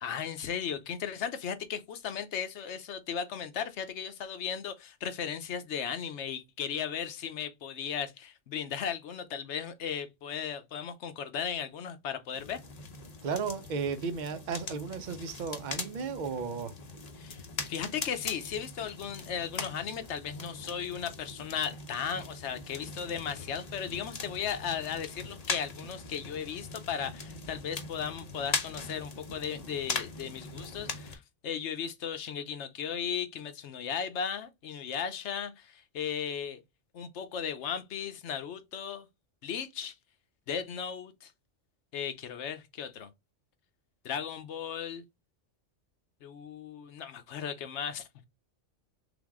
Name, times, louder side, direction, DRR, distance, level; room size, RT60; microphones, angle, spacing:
voice 1, 0.0-12.6 17.2-36.6 36.9-39.1 39.4-39.9 40.5-41.3 41.9-43.1 44.0-45.0 46.2-48.2, left 7 dB, 70° left, 1.0 m, -36 dB
sound 1, 12.3-31.2, left 4 dB, 40° left, 0.7 m, -41 dB
voice 2, 13.2-16.7, right 5 dB, 50° right, 0.6 m, -34 dB
3.5 x 3.4 x 3.5 m
omnidirectional pair, 1.3 m